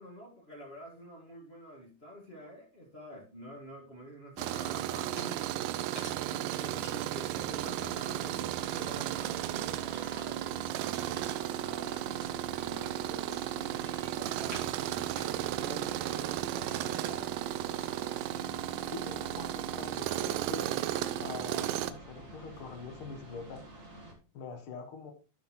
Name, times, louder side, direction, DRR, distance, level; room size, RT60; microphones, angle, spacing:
voice 1, 0.0-5.4 6.1-10.7 11.0-12.1 12.5-15.1 15.6-17.3, equal, 65° left, -3 dB, 0.6 m, -48 dB
Tools, 4.4-21.9, right 13 dB, 80° right, 2.0 m, -34 dB
sound 1, 5.0-18.2, right 1 dB, 30° right, 2.9 m, -53 dB
sound 2, 7.3-24.1, right 1 dB, 50° right, 0.9 m, -49 dB
voice 2, 18.9-20.8 21.2-23.6 24.3-25.1, left 5 dB, 90° left, 4 dB, 1.2 m, -44 dB
12.0 x 5.6 x 3.0 m, 0.34 s
omnidirectional pair, 4.3 m